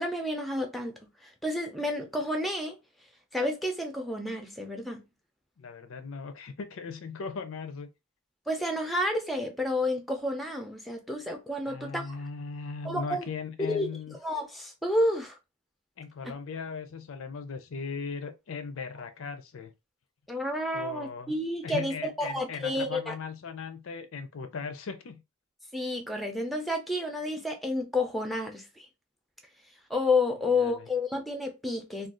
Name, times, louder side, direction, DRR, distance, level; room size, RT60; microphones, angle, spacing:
voice 1, 0.0-2.8 3.3-5.0 8.5-12.2 12.8-13.2 13.6-13.9 14.2-15.4 20.3-23.1 25.7-28.9 29.9-32.1, left 2 dB, ahead, 0.4 m, -30 dB
voice 2, 5.6-7.9 11.7-14.1 16.0-19.7 20.7-21.4 21.6-25.2 30.5-30.9, left 5 dB, 65° left, 0.4 m, -38 dB
2.5 x 2.3 x 3.6 m
head